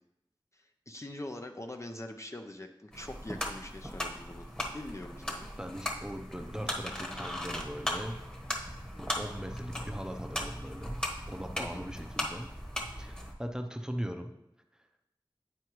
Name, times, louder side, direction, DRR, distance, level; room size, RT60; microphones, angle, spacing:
voice 1, 0.5-5.5 11.6-11.9, left 1 dB, 35° left, 4 dB, 0.5 m, -43 dB
sound 1, 2.9-13.3, left 1 dB, 10° left, 1.1 m, -38 dB
voice 2, 5.6-8.2 8.5-8.7 9.0-12.5 13.0-14.3, equal, 5° right, 4 dB, 0.6 m, -40 dB
9.3 x 4.7 x 3.0 m, 0.85 s
wide cardioid pair, 45°, 9 cm